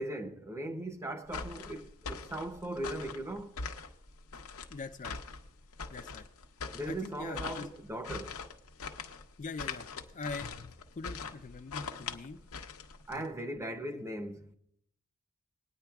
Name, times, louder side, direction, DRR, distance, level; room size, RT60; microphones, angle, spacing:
voice 1, 0.0-3.6 6.7-8.4 13.1-14.5, right 1 dB, 15° right, 0.7 m, -39 dB
sound 1, 1.3-13.2, left 5 dB, 75° left, 0.8 m, -42 dB
voice 2, 4.7-5.2 5.9-6.3 6.9-7.7 9.4-9.9 10.1-12.4 13.1-13.2 13.9-14.0, left 4 dB, 35° left, 0.4 m, -42 dB
20.0 x 9.6 x 2.3 m
head